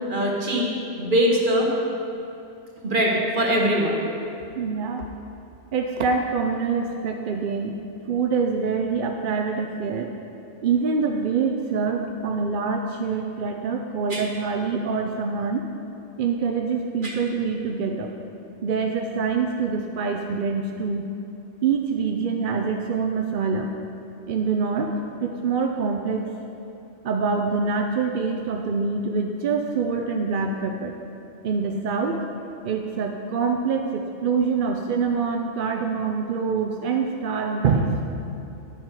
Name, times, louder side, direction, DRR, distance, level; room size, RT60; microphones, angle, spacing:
voice 1, 0.1-0.7 1.0-1.7 2.8-4.1 14.1-14.2 17.0-17.1, equal, 40° right, -1 dB, 1.4 m, -22 dB
voice 2, 4.6-5.1 5.7-7.8 8.1-10.1 10.6-15.6 16.2-18.1 18.6-21.1 21.6-23.7 24.3-24.9 25.2-26.3 27.0-30.9 31.4-32.2 32.6-38.2, right 5 dB, 55° right, 3 dB, 0.6 m, -25 dB
10.0 x 7.3 x 4.8 m, 2.7 s
omnidirectional pair, 1.3 m